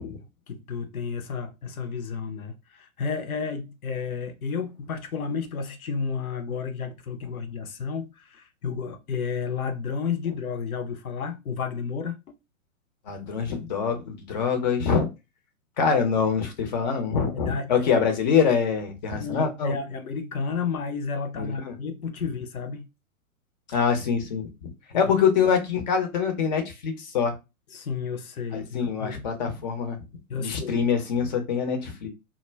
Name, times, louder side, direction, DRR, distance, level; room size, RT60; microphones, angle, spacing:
voice 1, 0.0-12.2 17.3-17.9 19.1-22.9 24.9-25.0 27.7-29.3 30.3-30.8, left 5 dB, 75° left, 0.6 m, -32 dB
voice 2, 13.1-15.1 15.8-19.7 21.4-21.7 23.7-27.3 28.7-30.0 30.4-32.1, left 6 dB, 30° left, 0.6 m, -25 dB
2.2 x 2.1 x 3.2 m
figure-of-eight pair, 110°, 43 cm